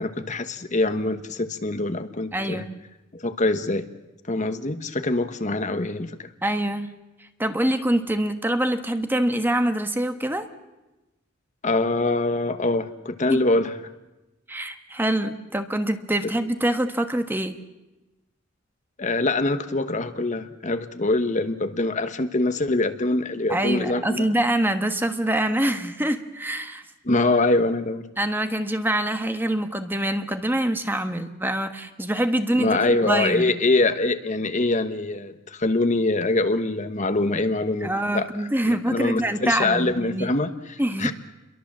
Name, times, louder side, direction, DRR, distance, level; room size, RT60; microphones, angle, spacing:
voice 1, 0.0-2.6 3.1-3.9 4.3-6.3 11.6-13.8 19.0-24.3 27.0-28.0 32.5-38.3 38.6-41.1, left 2 dB, 35° left, 9 dB, 1.2 m, -24 dB
voice 2, 2.3-2.7 6.4-6.9 7.4-10.5 13.3-13.4 14.5-17.6 23.5-26.8 28.2-32.8 33.1-33.5 37.8-40.3 40.8-41.1, right 1 dB, 10° right, 8 dB, 1.3 m, -25 dB
29.5 x 22.5 x 7.5 m, 1.1 s
head